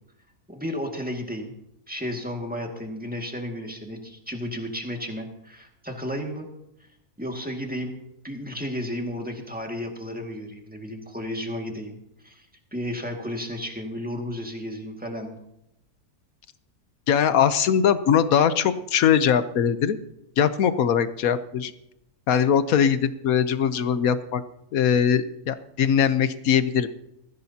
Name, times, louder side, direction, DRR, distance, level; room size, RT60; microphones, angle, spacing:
voice 1, 0.5-1.5 1.9-6.5 7.2-8.0 8.2-12.0 12.2-12.5 12.7-15.4, equal, 5° right, 2 dB, 1.9 m, -33 dB
voice 2, 17.1-20.0 20.4-21.7 22.3-24.4 24.7-26.9, left 8 dB, 70° left, 12 dB, 1.2 m, -21 dB
20.0 x 15.0 x 2.8 m, 0.82 s
omnidirectional pair, 1.6 m